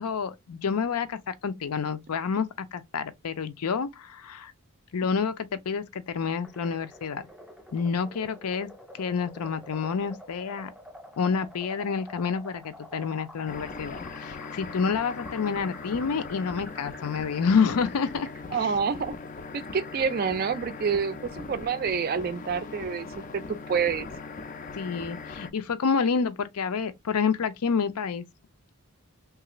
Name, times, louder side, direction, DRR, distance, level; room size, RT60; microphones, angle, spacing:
voice 1, 0.0-4.5 4.9-7.3 7.7-8.7 9.0-10.7 11.2-18.3 18.6-18.7 24.7-28.2, left 5 dB, 90° left, 0.5 m, -28 dB
sound 1, 6.4-18.4, left 1 dB, ahead, 0.7 m, -48 dB
sound 2, 13.5-25.5, left 4 dB, 35° left, 0.3 m, -40 dB
voice 2, 18.5-19.1 19.5-24.1, right 6 dB, 40° right, 0.3 m, -28 dB
3.2 x 2.4 x 3.0 m
head